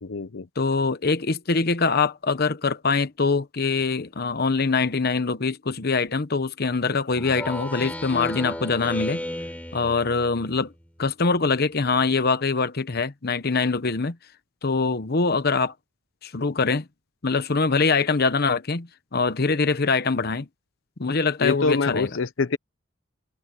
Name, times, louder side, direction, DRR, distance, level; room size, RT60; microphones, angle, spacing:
voice 1, 0.0-0.5 21.4-22.6, left 4 dB, 85° left, 0.8 m, -25 dB
voice 2, 0.6-9.2 9.7-10.7 11.0-14.2 14.6-15.7 16.2-16.9 17.2-20.5 21.0-22.1, left 4 dB, 55° left, 1.0 m, -23 dB
Speech synthesizer, 7.1-10.7, left 1 dB, 10° left, 6.9 m, -34 dB
head